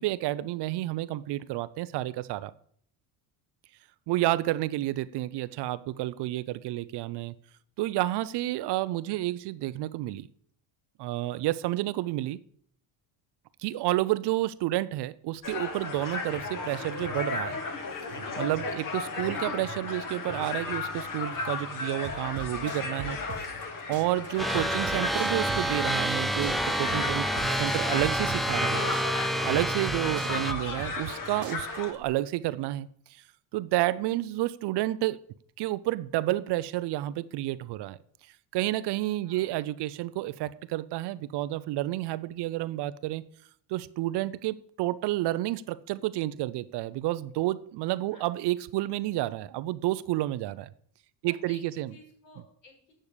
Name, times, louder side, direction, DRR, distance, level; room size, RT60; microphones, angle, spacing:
voice 1, 0.0-2.5 4.1-7.3 7.8-10.3 11.0-12.4 13.6-17.6 18.4-23.5 23.9-28.9 29.4-32.9 33.5-35.2 35.6-38.0 38.5-43.2 43.7-50.7 51.2-51.9, right 16 dB, 65° right, 0.7 m, -30 dB
sound 1, 15.4-31.9, left 3 dB, 45° left, 2.1 m, -35 dB
voice 2, 18.8-19.2 39.2-39.5 48.1-48.3 51.2-52.9, left 3 dB, 75° left, 5.9 m, -54 dB
sound 2, 22.0-23.7 23.9-26.2 26.4-28.7 28.9-31.2 31.4-32.0, right 7 dB, 40° right, 1.2 m, -40 dB
sound 3, 24.4-30.5, right 1 dB, ahead, 0.5 m, -28 dB
8.8 x 6.5 x 8.3 m
cardioid pair, 120°, 44 cm